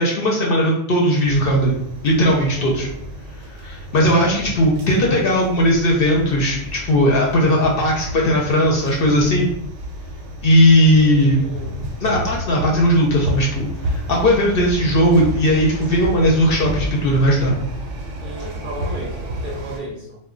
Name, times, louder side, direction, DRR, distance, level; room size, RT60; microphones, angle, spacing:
voice 1, 0.0-1.7 2.0-2.9 3.6-9.5 10.4-11.4 12.0-17.5, equal, 60° left, -2 dB, 0.7 m, -17 dB
sound 1, 1.2-19.8, equal, 90° right, 0.9 m, -31 dB
voice 2, 2.5-2.9 10.9-11.8 18.2-20.2, right 1 dB, 55° right, -3 dB, 0.6 m, -34 dB
2.2 x 2.1 x 3.6 m, 0.75 s
omnidirectional pair, 1.2 m